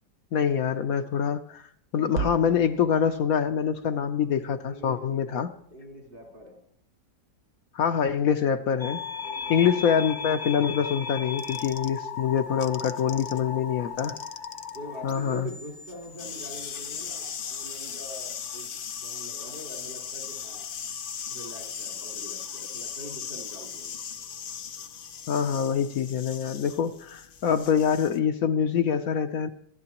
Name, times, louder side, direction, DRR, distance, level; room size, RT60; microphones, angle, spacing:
voice 1, 0.3-1.6 1.9-5.5 7.7-9.0 9.5-14.2 15.0-15.5 25.3-29.5, left 7 dB, 65° left, 8 dB, 1.0 m, -25 dB
sound 1, 2.1-6.5, right 4 dB, 60° right, 0.8 m, -40 dB
voice 2, 4.4-5.4 5.7-6.6 9.5-9.8 12.8-13.9 14.7-20.7 21.3-23.9 27.7-28.0, equal, 80° right, -1 dB, 4.9 m, -44 dB
sound 2, 8.8-18.2, left 6 dB, 30° left, 0.4 m, -37 dB
sound 3, 11.4-13.4 13.7-28.2, left 7 dB, 90° left, 0.4 m, -38 dB
26.0 x 12.0 x 3.0 m, 0.64 s
omnidirectional pair, 1.9 m